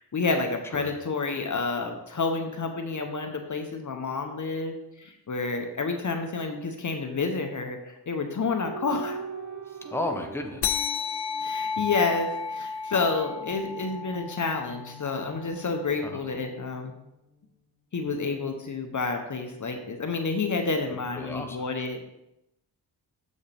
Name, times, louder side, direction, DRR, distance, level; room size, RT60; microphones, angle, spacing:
voice 1, 0.1-9.2 11.4-16.9 17.9-22.0, left 4 dB, 45° left, 4 dB, 0.9 m, -29 dB
sound 1, 8.4-12.1 13.5-17.3 18.1-19.3, right 4 dB, 40° right, 1.8 m, -43 dB
voice 2, 9.9-10.8 11.8-11.9 16.0-16.2 21.1-21.6, left 1 dB, 5° left, 3 dB, 1.0 m, -33 dB
sound 2, 10.6-15.5, left 6 dB, 65° left, 0.6 m, -32 dB
7.2 x 6.3 x 3.4 m, 0.86 s
cardioid pair, 65°, 43 cm